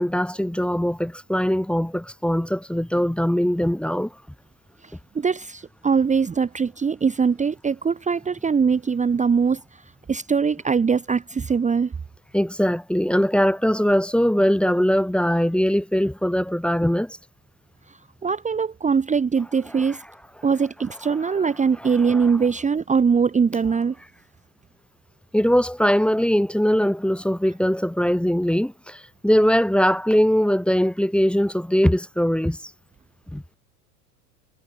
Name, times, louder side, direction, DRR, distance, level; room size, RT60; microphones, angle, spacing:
voice 1, 0.0-4.1 12.3-17.2 19.9-20.0 21.8-22.3 25.3-32.6 33.3-33.4, equal, ahead, 1.6 m, -21 dB
voice 2, 5.1-9.6 10.1-11.9 18.2-20.0 20.4-23.9, right 6 dB, 15° right, 1.3 m, -21 dB
hypercardioid pair, 90°, 49 cm